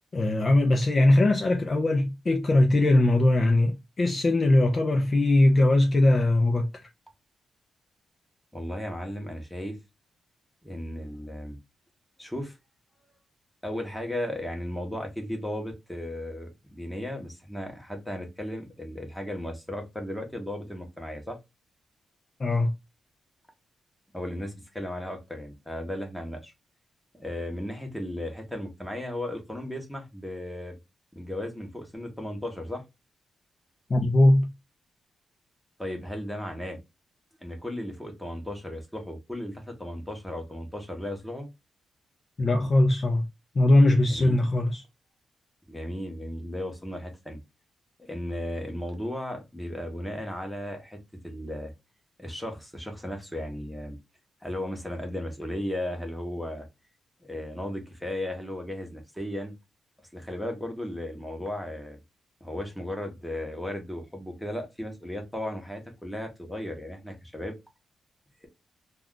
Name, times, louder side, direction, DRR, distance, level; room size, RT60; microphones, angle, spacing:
voice 1, 0.1-6.7 22.4-22.7 33.9-34.5 42.4-43.2 43.6-44.8, left 1 dB, 30° left, 0.4 m, -21 dB
voice 2, 8.5-9.8 10.6-11.6 12.2-12.6 13.6-21.4 24.1-26.5 27.1-30.8 31.1-32.8 35.8-36.8 37.4-41.5 44.1-44.4 45.7-47.4 48.0-51.0 51.2-51.7 52.2-54.0 54.4-56.7 57.2-59.6 60.1-62.0 62.4-67.6, left 1 dB, 5° left, 0.8 m, -35 dB
2.3 x 2.3 x 3.6 m
wide cardioid pair, 150°, 0 cm